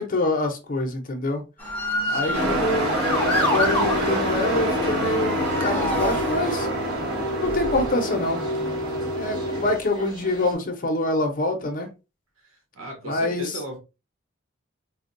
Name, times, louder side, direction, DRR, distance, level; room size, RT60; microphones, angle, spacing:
voice 1, 0.0-1.4 2.1-2.9 3.2-6.7 7.4-8.4 9.2-11.9 13.0-13.6, left 2 dB, 45° left, 0.7 m, -26 dB
Motor vehicle (road) / Siren, 1.6-6.8 7.5-7.9, left 1 dB, 10° left, 0.8 m, -28 dB
voice 2, 2.0-3.1 12.4-13.8, right 2 dB, 80° right, 1.0 m, -38 dB
Truck, 2.3-9.8, right 1 dB, 55° right, 1.3 m, -26 dB
sound 1, 3.0-10.5, equal, 20° right, 1.1 m, -41 dB
4.4 x 2.3 x 2.5 m
head